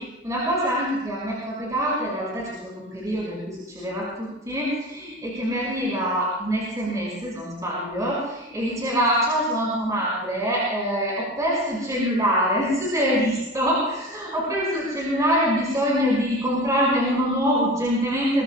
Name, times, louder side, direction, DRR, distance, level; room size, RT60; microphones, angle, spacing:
voice 1, 0.0-18.4, equal, 20° right, -6 dB, 5.1 m, -24 dB
23.5 x 20.5 x 2.2 m, 0.90 s
head